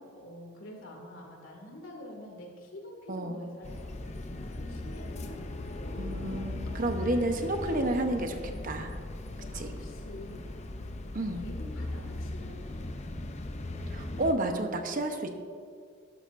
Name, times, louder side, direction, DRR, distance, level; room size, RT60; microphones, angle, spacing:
voice 1, 0.1-6.1 9.5-10.5 11.3-13.2, left 1 dB, 90° left, 0 dB, 2.3 m, -47 dB
voice 2, 3.1-3.5 6.0-8.9 9.5-9.7 11.1-11.4 13.9-15.3, right 1 dB, 45° right, 5 dB, 0.9 m, -31 dB
sound 1, 3.6-14.3, left 1 dB, 35° left, 0.6 m, -38 dB
12.0 x 12.0 x 2.6 m, 2.2 s
head